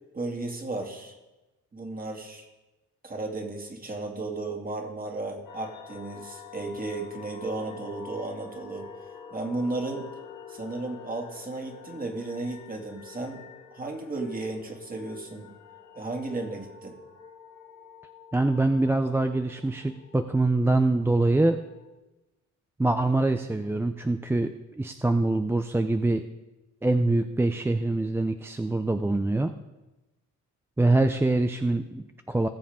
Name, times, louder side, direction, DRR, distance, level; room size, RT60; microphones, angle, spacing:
voice 1, 0.1-1.2 1.7-2.5 3.0-8.9 9.3-10.0 10.5-13.4 13.7-15.5 15.9-17.0, right 2 dB, 30° right, 1 dB, 2.4 m, -34 dB
sound 1, 5.5-21.9, left 6 dB, 80° left, 1.9 m, -48 dB
voice 2, 18.3-21.6 22.8-24.5 24.8-26.2 26.8-29.5 30.8-32.5, right 2 dB, 10° right, 7 dB, 0.4 m, -24 dB
19.5 x 7.1 x 3.7 m, 1.1 s
cardioid pair, 90°, 30 cm